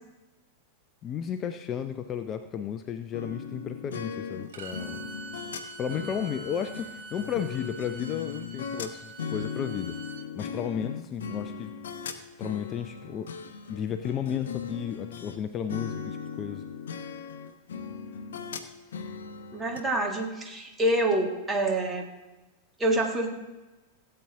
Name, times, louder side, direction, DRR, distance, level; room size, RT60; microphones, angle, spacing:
voice 1, 1.0-5.1 5.8-10.0 10.4-11.7 12.4-13.3 13.7-16.6, left 8 dB, 30° left, 9 dB, 0.5 m, -33 dB
sound 1, 3.1-15.4 15.7-19.8, left 6 dB, 65° left, 0.7 m, -38 dB
Bowed string instrument, 4.5-10.2, right 3 dB, 60° right, 1.0 m, -44 dB
voice 2, 19.5-22.0 22.8-23.3, right 1 dB, 15° right, 2 dB, 1.7 m, -26 dB
16.5 x 7.8 x 3.5 m, 1.1 s
figure-of-eight pair, 90°, 0 cm